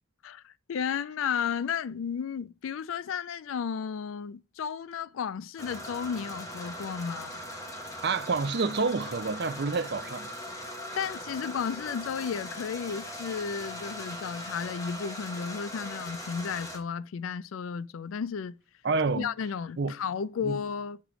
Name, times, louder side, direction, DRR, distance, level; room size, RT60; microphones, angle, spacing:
voice 1, 0.2-7.4 11.0-18.6 19.2-21.0, left 7 dB, 90° left, 0.4 m, -33 dB
sound 1, 5.6-16.8, left 1 dB, 15° left, 1.1 m, -40 dB
voice 2, 8.0-10.3 10.9-11.0 18.8-19.3 19.8-19.9 20.4-20.6, right 4 dB, 55° right, 0.5 m, -28 dB
8.3 x 3.0 x 5.0 m
head